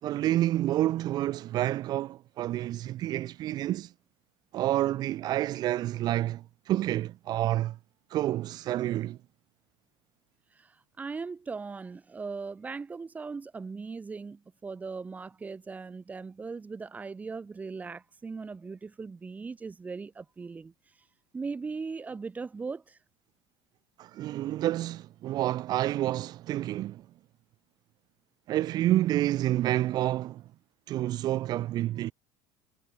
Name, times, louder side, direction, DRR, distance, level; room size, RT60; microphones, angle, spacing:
voice 1, 0.0-3.9 4.5-7.8 8.1-9.2 24.0-27.0 28.5-30.4 30.9-32.1, right 14 dB, 45° right, 4.7 m, -29 dB
voice 2, 10.6-20.7 21.3-23.0, right 4 dB, 15° right, 7.9 m, -39 dB
cardioid pair, 145°, 9 cm